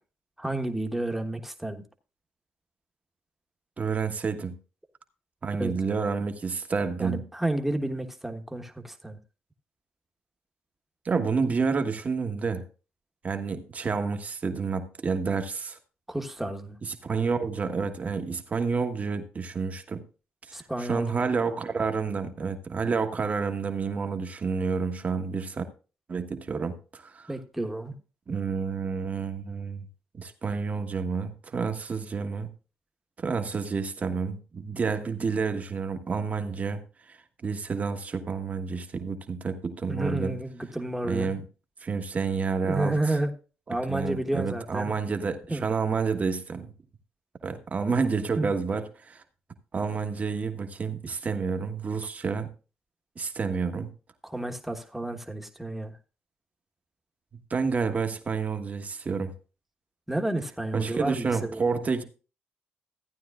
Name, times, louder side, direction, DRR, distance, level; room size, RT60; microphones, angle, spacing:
voice 1, 0.4-1.8 5.5-5.7 7.0-9.2 16.1-16.7 20.5-21.1 27.3-27.9 39.9-41.3 42.6-43.3 43.7-44.9 45.5-45.6 48.4-48.5 54.2-55.9 60.1-61.6, right 1 dB, 5° right, 1.2 m, -31 dB
voice 2, 3.8-4.6 5.4-7.2 11.0-12.6 13.2-15.8 16.8-20.0 20.5-25.6 26.1-27.3 28.3-29.8 30.1-32.5 33.2-36.8 37.1-37.2 37.4-40.4 41.1-41.4 41.8-43.2 43.7-46.7 47.4-49.2 49.7-52.5 53.2-53.9 57.5-59.3 60.7-62.0, right 5 dB, 40° right, 1.3 m, -29 dB
14.5 x 9.3 x 2.4 m
cardioid pair, 75°, 4 cm